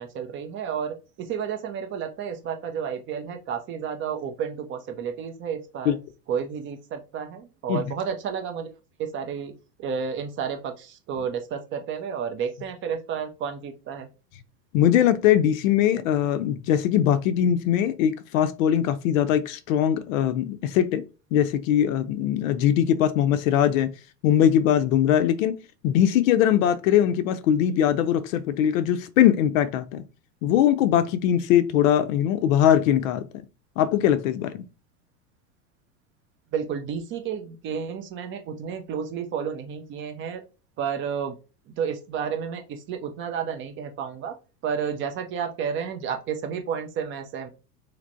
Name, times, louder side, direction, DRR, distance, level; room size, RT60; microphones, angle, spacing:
voice 1, 0.0-6.0 6.3-8.7 9.0-9.5 9.8-14.1 36.5-40.4 40.8-41.4 41.7-44.4 44.6-47.5, right 7 dB, 25° right, 0.4 m, -31 dB
voice 2, 14.7-21.0 21.3-23.9 24.2-30.0 30.4-33.3 33.8-34.6, left 10 dB, 55° left, 0.5 m, -21 dB
3.2 x 3.1 x 2.5 m
hypercardioid pair, 90°, 50 cm